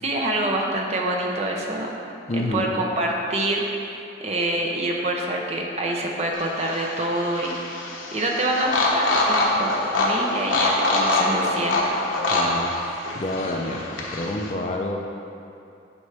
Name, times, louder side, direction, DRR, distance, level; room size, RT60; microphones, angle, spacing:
voice 1, 0.0-1.9 2.3-12.0, right 1 dB, 35° right, -1 dB, 0.7 m, -26 dB
voice 2, 2.3-2.7 12.3-15.0, left 1 dB, 35° left, 2 dB, 0.4 m, -29 dB
sound 1, 6.3-14.5, left 2 dB, 85° left, 1.1 m, -24 dB
9.6 x 5.2 x 3.4 m, 2.6 s
head